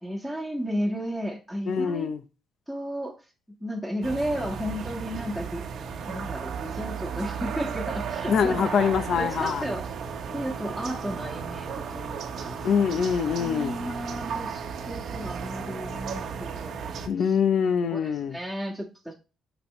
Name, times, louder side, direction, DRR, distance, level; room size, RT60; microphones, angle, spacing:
voice 1, 0.0-2.1 2.7-3.3 3.6-5.6 6.0-8.6 9.2-9.9 10.3-12.7 13.4-17.4 17.8-19.1, equal, 5° left, 1.6 m, -33 dB
voice 2, 1.7-2.2 8.3-9.6 12.6-13.7 17.1-18.4, left 7 dB, 65° left, 0.8 m, -24 dB
sound 1, 4.0-17.1, right 6 dB, 70° right, 1.0 m, -34 dB
5.8 x 5.4 x 3.2 m
cardioid pair, 90°, 0 cm